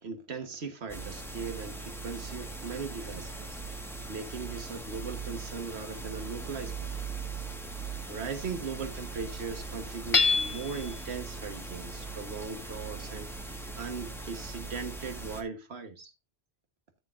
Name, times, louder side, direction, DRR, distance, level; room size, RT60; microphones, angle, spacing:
voice 1, 0.0-3.6 4.1-6.9 8.1-13.3 13.8-16.1, right 5 dB, 75° right, 1.7 m, -39 dB
sound 1, 0.9-15.4, right 4 dB, ahead, 1.6 m, -40 dB
Hammer / Chink clink, 10.1-10.9, left 4 dB, 35° left, 0.7 m, -25 dB
14.0 x 6.9 x 2.6 m
omnidirectional pair, 1.1 m